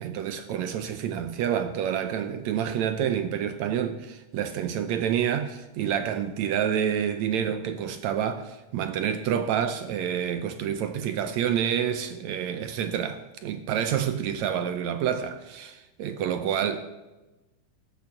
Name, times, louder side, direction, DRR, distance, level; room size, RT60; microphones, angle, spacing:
voice 1, 0.0-16.9, right 9 dB, 75° right, 1.7 m, -28 dB
12.5 x 8.4 x 7.6 m
omnidirectional pair, 3.8 m